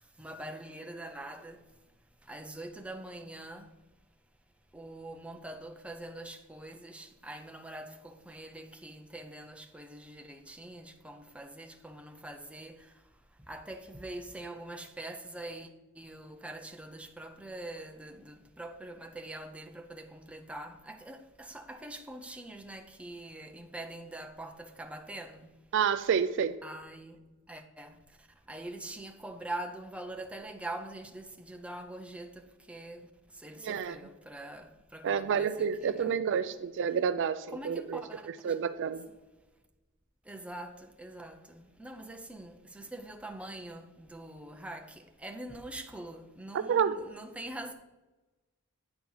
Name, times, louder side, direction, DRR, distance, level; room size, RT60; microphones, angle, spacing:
voice 1, 0.0-1.6 2.2-3.7 4.7-13.0 13.4-15.7 16.0-25.5 26.6-27.2 27.5-36.2 37.5-38.6 40.3-47.7, right 1 dB, 5° right, 0.6 m, -44 dB
voice 2, 25.7-26.5 33.6-34.0 35.0-38.0 38.4-39.0 46.5-46.9, right 7 dB, 55° right, 0.4 m, -29 dB
8.9 x 4.4 x 5.5 m
head